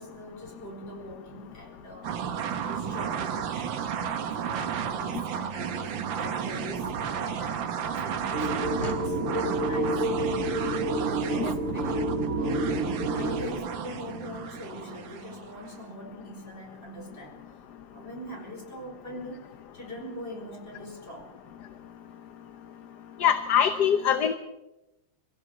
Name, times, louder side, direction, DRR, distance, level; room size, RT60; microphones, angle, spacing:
voice 1, 0.0-10.0 10.6-12.1 12.4-17.4 17.9-19.4 19.7-21.3, equal, 30° left, 0 dB, 5.4 m, -42 dB
sound 1, 2.0-15.8, right 8 dB, 75° right, 1.8 m, -33 dB
sound 2, 8.3-13.5, right 1 dB, 40° right, 5.2 m, -29 dB
voice 2, 23.2-24.3, left 8 dB, 60° left, 9 dB, 1.4 m, -23 dB
23.0 x 16.5 x 7.2 m, 0.99 s
omnidirectional pair, 2.2 m